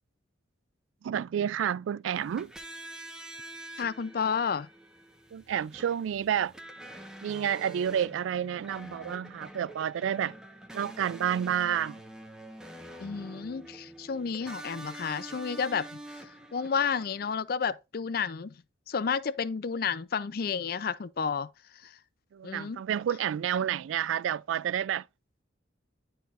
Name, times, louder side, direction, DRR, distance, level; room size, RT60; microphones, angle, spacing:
voice 1, 1.0-2.5 5.3-6.5 7.2-10.3 10.7-12.0 22.3-25.0, right 9 dB, 85° right, 0.3 m, -30 dB
sound 1, 2.1-17.3, right 1 dB, 5° right, 1.1 m, -46 dB
voice 2, 3.8-4.7 13.0-16.0 16.5-18.5 18.9-21.5 21.8-22.0 22.4-22.8, left 6 dB, 50° left, 0.4 m, -31 dB
11.5 x 4.3 x 2.5 m
head